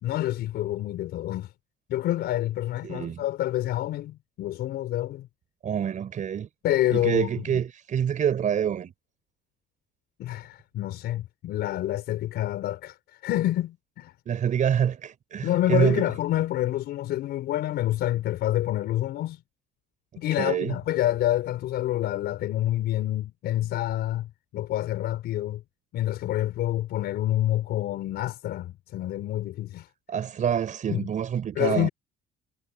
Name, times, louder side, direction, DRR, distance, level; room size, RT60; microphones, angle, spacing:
voice 1, 0.0-1.5 1.9-5.3 6.6-7.6 10.2-14.1 15.4-19.4 20.2-25.6 25.9-29.9 30.9-31.1 31.6-31.9, left 14 dB, 75° left, 5.6 m, -27 dB
voice 2, 2.8-3.2 5.6-6.5 6.9-8.9 14.3-16.1 20.4-20.7 30.1-31.9, right 8 dB, 50° right, 5.0 m, -26 dB
cardioid pair, 110°, 17 cm